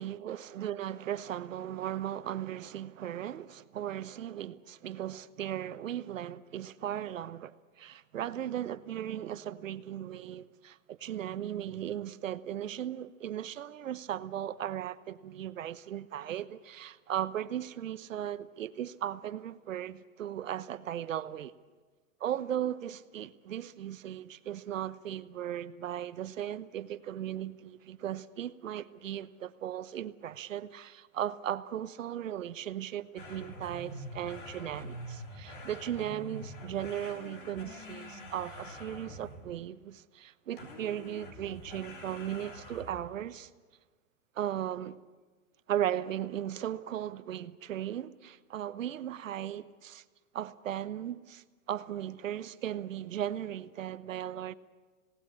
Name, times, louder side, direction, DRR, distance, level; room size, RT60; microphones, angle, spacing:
voice 1, 0.0-21.5 22.2-43.5 44.3-45.0 45.7-50.0 50.3-54.5, right 11 dB, 75° right, 1.1 m, -37 dB
sound 1, 33.2-39.6 40.6-43.1, left 1 dB, 40° left, 3.8 m, -45 dB
27.0 x 18.5 x 8.7 m
hypercardioid pair, 180°, 39 cm